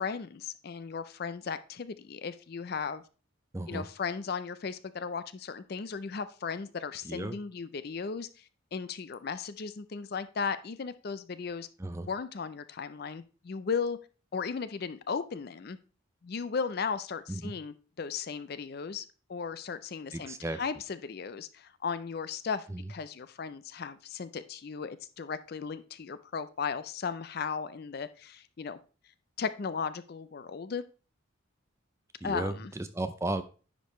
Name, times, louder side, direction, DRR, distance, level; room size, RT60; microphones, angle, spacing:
voice 1, 0.0-3.0 3.7-8.4 8.7-11.7 12.1-14.0 14.3-15.8 16.2-19.0 19.3-28.8 29.4-30.8 32.2-32.7, left 5 dB, 50° left, 13 dB, 0.4 m, -36 dB
voice 2, 3.5-3.9 7.0-7.4 11.8-12.1 17.3-17.5 20.1-20.6 22.7-22.8 32.2-33.4, right 2 dB, 15° right, 10 dB, 0.4 m, -34 dB
10.0 x 5.2 x 3.1 m, 0.36 s
head